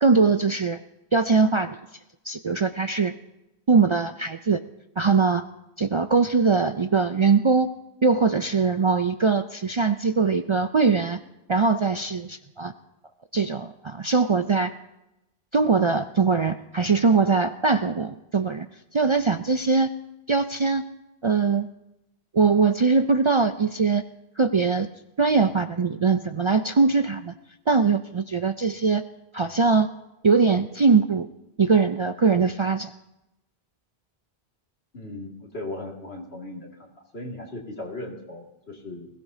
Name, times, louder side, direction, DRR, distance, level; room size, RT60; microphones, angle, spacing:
voice 1, 0.0-0.8 1.1-1.8 2.3-3.1 3.7-4.6 5.0-5.5 5.8-7.7 8.0-11.2 11.5-12.7 13.3-14.7 15.5-18.7 18.9-19.9 20.3-20.8 21.2-21.7 22.3-24.0 24.4-24.9 25.2-27.3 27.7-29.0 29.3-29.9 30.2-31.3 31.6-32.9, right 4 dB, 45° right, 8 dB, 0.4 m, -21 dB
voice 2, 34.9-39.1, left 2 dB, 85° left, 0 dB, 2.6 m, -37 dB
21.0 x 16.5 x 2.8 m, 0.91 s
omnidirectional pair, 1.0 m